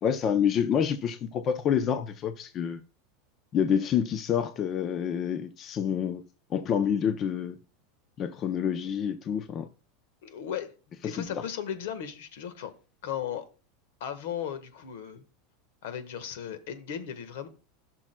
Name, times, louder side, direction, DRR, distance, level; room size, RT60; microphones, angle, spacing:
voice 1, 0.0-2.8 3.5-6.2 6.5-7.6 8.2-9.7 11.0-11.4, left 8 dB, 25° left, 0.5 m, -28 dB
voice 2, 10.2-12.7 13.0-13.5 14.0-15.2 15.8-17.5, left 9 dB, 70° left, 1.3 m, -36 dB
16.5 x 6.1 x 2.2 m
supercardioid pair, 165°, 0 cm